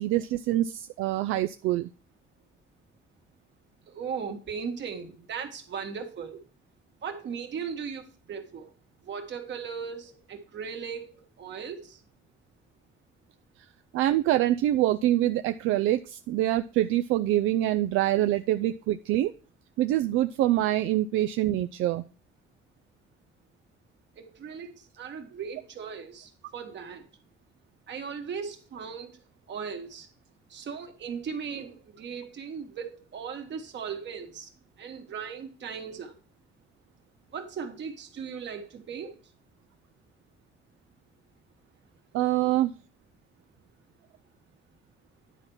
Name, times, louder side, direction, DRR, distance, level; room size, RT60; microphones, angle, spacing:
voice 1, 0.0-1.9 13.9-19.3 19.8-22.0 42.1-42.7, right 14 dB, 90° right, 0.4 m, -25 dB
voice 2, 3.9-6.4 7.0-8.7 9.0-12.0 24.2-27.0 27.9-30.1 30.5-34.5 34.8-36.1 37.3-39.2, right 6 dB, 65° right, 1.8 m, -38 dB
10.0 x 4.5 x 5.6 m
cardioid pair, 90°, 20 cm